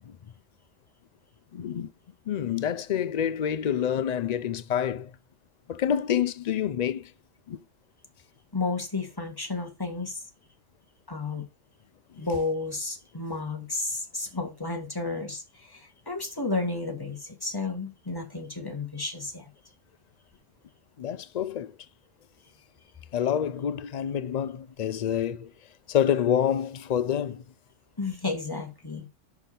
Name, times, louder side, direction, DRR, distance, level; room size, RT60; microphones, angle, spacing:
voice 1, 1.5-1.9 2.3-5.1 5.7-7.1 7.5-7.6 21.0-21.7 23.1-25.5 25.9-27.4, left 9 dB, 90° left, 0.3 m, -27 dB
voice 2, 8.5-10.2 11.1-11.4 12.2-19.5 28.0-29.1, left 3 dB, 15° left, 1.8 m, -32 dB
5.9 x 5.8 x 6.8 m
omnidirectional pair, 1.3 m